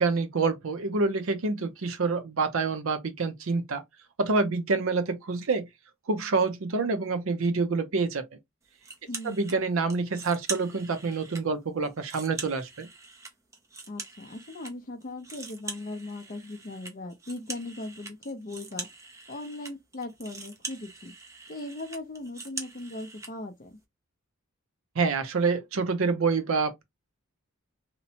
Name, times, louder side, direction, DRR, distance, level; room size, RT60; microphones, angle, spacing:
voice 1, 0.0-3.8 4.2-5.6 6.1-8.2 9.2-12.9 25.0-26.8, right 4 dB, 65° right, 0.6 m, -27 dB
sound 1, 8.8-9.6 9.9-11.4 11.8-14.7 15.0-23.3, right 3 dB, 15° right, 0.4 m, -42 dB
voice 2, 9.1-9.5 13.9-18.9 19.3-21.1 21.5-23.8, left 2 dB, 40° left, 0.5 m, -39 dB
2.9 x 2.0 x 2.7 m
head